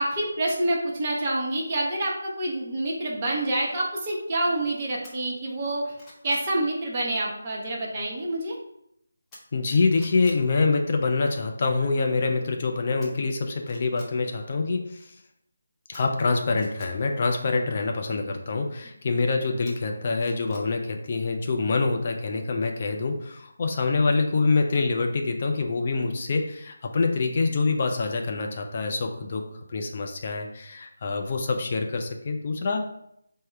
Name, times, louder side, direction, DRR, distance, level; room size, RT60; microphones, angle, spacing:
voice 1, 0.0-5.9 6.2-8.6, right 1 dB, 30° right, -3 dB, 0.8 m, -27 dB
sound 1, 5.0-5.1 5.6-6.5 9.3-9.7 9.9-10.4 13.0-13.1 13.6-14.1 15.9-16.9 19.7-20.7 21.0-21.1, left 1 dB, 10° left, 0.7 m, -48 dB
voice 2, 9.5-15.1 15.9-29.4 29.7-32.8, left 3 dB, 40° left, 3 dB, 0.4 m, -25 dB
3.5 x 2.1 x 4.3 m, 0.75 s
figure-of-eight pair, 160°, 0 cm